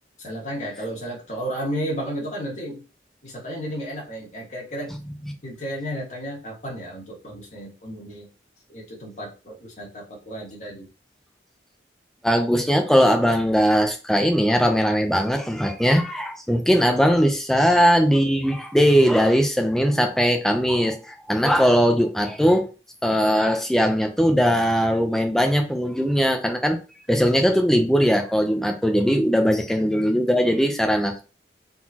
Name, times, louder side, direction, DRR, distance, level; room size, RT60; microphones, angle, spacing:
voice 1, 0.2-2.8 3.2-5.0 5.4-8.3 8.7-10.9 29.8-29.9, equal, 40° left, 1.9 m, -33 dB
voice 2, 12.2-22.7 23.0-26.8 27.1-31.2, equal, ahead, 0.7 m, -20 dB
4.2 x 3.9 x 2.9 m
head